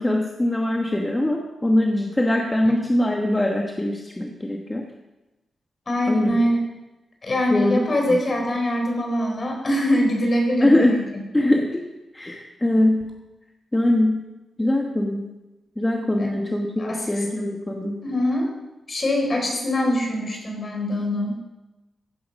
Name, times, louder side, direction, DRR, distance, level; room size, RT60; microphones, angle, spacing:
voice 1, 0.0-4.9 6.1-6.4 7.5-7.8 8.1-8.2 10.6-11.0 11.3-11.8 12.1-13.1 13.7-14.2 14.6-15.3 15.8-18.0, left 1 dB, 15° left, 2 dB, 1.3 m, -22 dB
voice 2, 5.9-6.6 7.2-11.0 16.2-16.3 16.8-17.2 18.0-18.6 18.9-21.4, left 1 dB, 35° left, 1 dB, 4.2 m, -23 dB
16.0 x 11.5 x 5.4 m, 1.1 s
wide cardioid pair, 105°, 0 cm